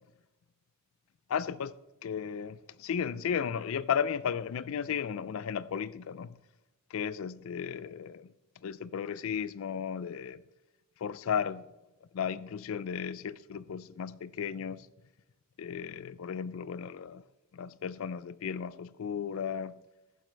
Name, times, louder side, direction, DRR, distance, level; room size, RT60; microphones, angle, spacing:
voice 1, 1.3-1.7 2.0-6.4 6.9-8.3 8.6-10.4 11.0-11.7 12.1-14.9 15.6-17.2 17.5-19.8, left 7 dB, 65° left, 0.4 m, -34 dB
14.0 x 7.3 x 3.3 m
head